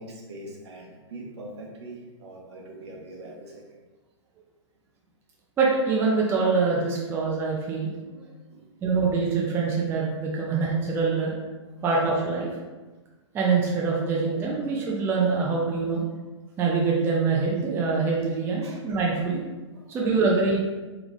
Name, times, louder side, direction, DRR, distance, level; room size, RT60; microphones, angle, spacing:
voice 1, 0.0-3.6 8.5-8.7 11.8-11.9 18.6-18.8 19.7-20.0, right 1 dB, 60° right, -1 dB, 0.9 m, -42 dB
voice 2, 5.6-8.2 8.8-11.3 11.8-12.5 13.3-16.0 16.6-19.4 19.9-20.6, right 4 dB, 15° right, -3 dB, 0.4 m, -24 dB
3.4 x 3.3 x 2.6 m, 1.2 s
figure-of-eight pair, 115°, 16 cm